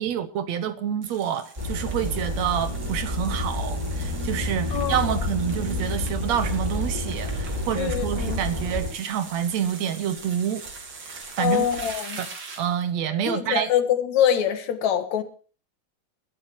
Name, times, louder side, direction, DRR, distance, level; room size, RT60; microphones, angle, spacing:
voice 1, 0.0-10.7 11.0-11.7 12.2-12.3 12.6-13.7, right 9 dB, 70° right, 2.1 m, -28 dB
sound 1, 1.0-12.9, right 4 dB, 40° right, 3.2 m, -42 dB
sound 2, 1.6-8.9, left 1 dB, 15° right, 4.7 m, -29 dB
voice 2, 4.7-5.2 7.8-8.4 11.4-12.2 13.3-15.2, left 9 dB, 70° left, 2.7 m, -24 dB
22.0 x 13.0 x 3.0 m
omnidirectional pair, 3.5 m